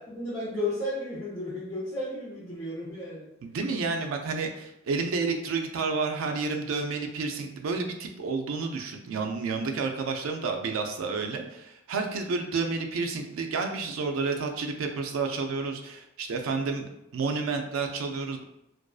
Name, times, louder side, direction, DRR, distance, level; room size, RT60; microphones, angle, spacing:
voice 1, 0.1-3.3, left 1 dB, 20° left, -11 dB, 0.7 m, -33 dB
voice 2, 3.4-18.4, right 4 dB, 80° right, 4 dB, 0.4 m, -30 dB
2.5 x 2.3 x 2.3 m, 0.84 s
head